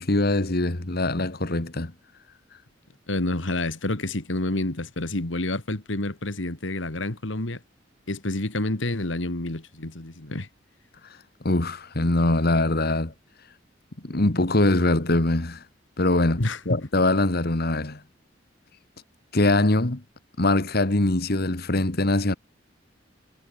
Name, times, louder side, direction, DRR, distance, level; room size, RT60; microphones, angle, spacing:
voice 1, 0.0-1.9 11.4-13.1 14.0-15.6 16.0-18.0 19.3-20.0 20.4-22.3, left 2 dB, 55° left, 1.9 m, -23 dB
voice 2, 3.1-7.6 8.1-10.5 16.4-16.6, left 2 dB, 80° left, 2.2 m, -28 dB
head